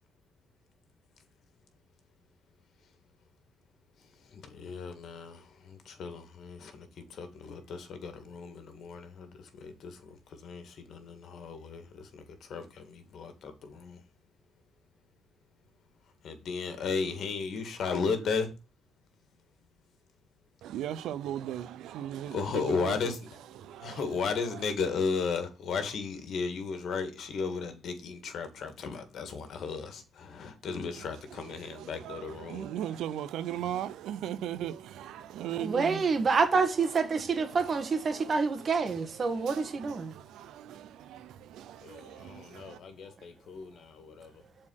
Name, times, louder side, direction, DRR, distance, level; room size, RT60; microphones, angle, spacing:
voice 1, 4.3-14.0 16.2-18.5 22.3-23.3 23.8-32.7 41.8-44.3, left 5 dB, 65° left, 2.0 m, -35 dB
voice 2, 20.6-23.1 23.6-24.0 31.6-36.1 38.1-38.3 39.2-42.8, right 11 dB, 85° right, 0.6 m, -38 dB
voice 3, 35.6-40.1, right 4 dB, 45° right, 1.7 m, -27 dB
7.3 x 4.4 x 6.5 m
cardioid pair, 90°, 0 cm